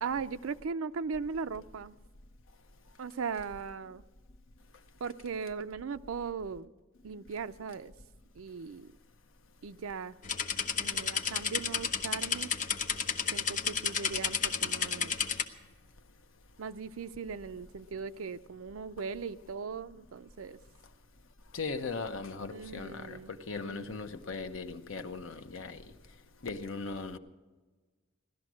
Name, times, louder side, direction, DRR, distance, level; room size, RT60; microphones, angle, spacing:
voice 1, 0.0-2.0 3.0-4.0 5.0-6.7 7.0-7.9 8.3-8.9 9.6-10.2 10.7-12.5 13.3-15.2 16.6-20.6 22.5-23.3 23.6-24.0, right 5 dB, 75° right, 0.5 m, -38 dB
sound 1, 10.2-15.4, left 6 dB, 40° left, 0.9 m, -32 dB
voice 2, 21.5-25.8 26.4-27.2, left 4 dB, 70° left, 0.9 m, -38 dB
17.5 x 12.5 x 6.2 m
head